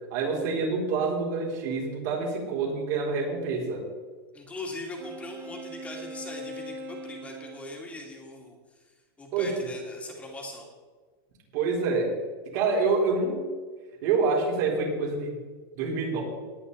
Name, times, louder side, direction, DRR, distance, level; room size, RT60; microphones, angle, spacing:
voice 1, 0.1-3.8 9.3-9.5 11.5-12.1 12.5-13.4 14.0-15.4 15.8-16.2, right 4 dB, 50° right, -2 dB, 4.3 m, -27 dB
voice 2, 4.3-8.6 9.2-10.7, left 2 dB, 10° left, 0 dB, 2.5 m, -40 dB
Wind instrument woodwind instrument, 4.9-7.8, right 1 dB, 30° right, 1.5 m, -41 dB
19.0 x 9.1 x 4.2 m, 1.4 s
supercardioid pair, 160°, 12 cm